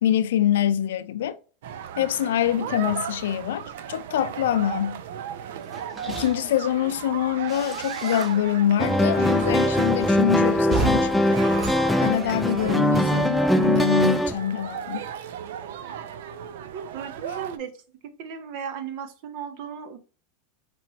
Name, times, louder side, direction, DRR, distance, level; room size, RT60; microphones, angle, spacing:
voice 1, 0.0-1.4 2.0-5.0 6.1-11.4 12.0-15.1, left 11 dB, 80° left, 0.4 m, -25 dB
sound 1, 1.6-17.6, right 9 dB, 75° right, 0.5 m, -36 dB
sound 2, 5.6-8.6 8.8-12.7, right 4 dB, 15° right, 1.0 m, -35 dB
sound 3, 8.8-14.3, equal, ahead, 0.4 m, -21 dB
voice 2, 16.7-17.7 18.0-20.0, right 7 dB, 60° right, 0.9 m, -36 dB
5.2 x 3.1 x 3.0 m
hypercardioid pair, 115°, 0 cm